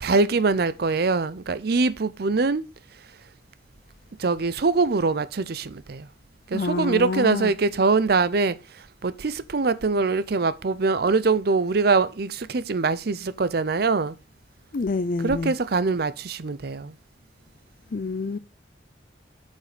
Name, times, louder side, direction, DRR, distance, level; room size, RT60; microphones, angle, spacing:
voice 1, 0.0-2.6 4.2-6.1 6.5-8.6 9.0-14.2 15.2-16.9, right 4 dB, 60° right, 0.6 m, -23 dB
voice 2, 6.5-7.5 14.7-15.5 17.9-18.4, left 3 dB, 50° left, 0.5 m, -27 dB
8.2 x 5.4 x 5.0 m
head